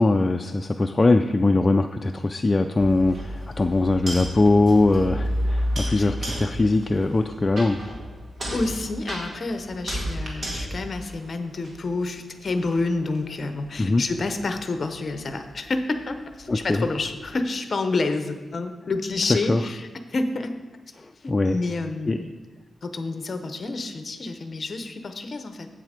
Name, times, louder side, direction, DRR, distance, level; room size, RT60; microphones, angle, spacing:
voice 1, 0.0-7.8 13.8-14.0 16.5-16.8 19.5-19.6 21.0-21.6 22.1-22.2, left 2 dB, 20° left, 5 dB, 0.3 m, -21 dB
sound 1, 2.8-12.0 12.5-17.3, equal, 45° right, 1.8 m, -32 dB
voice 2, 8.5-20.5 21.2-22.3 22.8-25.7, left 3 dB, 40° left, 8 dB, 0.7 m, -29 dB
8.1 x 7.5 x 5.0 m, 1.4 s
wide cardioid pair, 145°, 0 cm